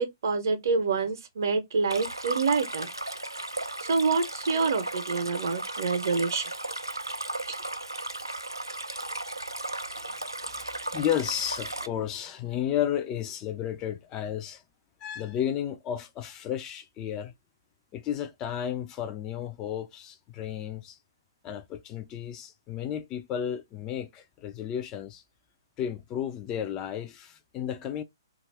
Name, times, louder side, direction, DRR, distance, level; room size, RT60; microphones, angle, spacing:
voice 1, 0.0-2.9 3.8-6.5 7.5-7.6, right 4 dB, 50° right, 0.7 m, -27 dB
Stream, 1.9-11.9, right 2 dB, 85° right, 0.4 m, -35 dB
voice 2, 10.9-14.6 15.0-17.3 17.9-21.0 21.4-25.2 25.8-28.0, left 10 dB, 20° left, 0.4 m, -32 dB
2.6 x 2.4 x 3.2 m
figure-of-eight pair, 125°, 2 cm